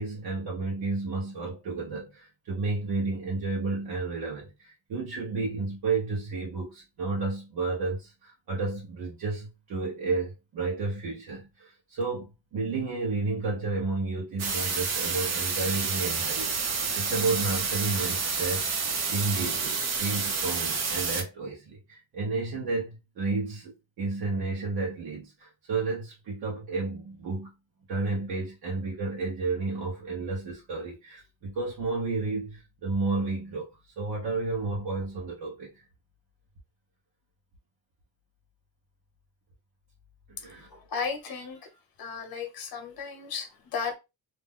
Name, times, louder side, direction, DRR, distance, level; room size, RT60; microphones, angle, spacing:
voice 1, 0.0-18.8 19.1-27.5 27.9-35.7 40.3-40.8, right 3 dB, 50° right, 0.9 m, -32 dB
sound 1, 14.4-21.2, right 5 dB, 35° right, 0.6 m, -29 dB
voice 2, 40.7-41.7 42.0-44.0, left 5 dB, 45° left, 1.0 m, -35 dB
2.6 x 2.2 x 3.5 m
cardioid pair, 160°, 48 cm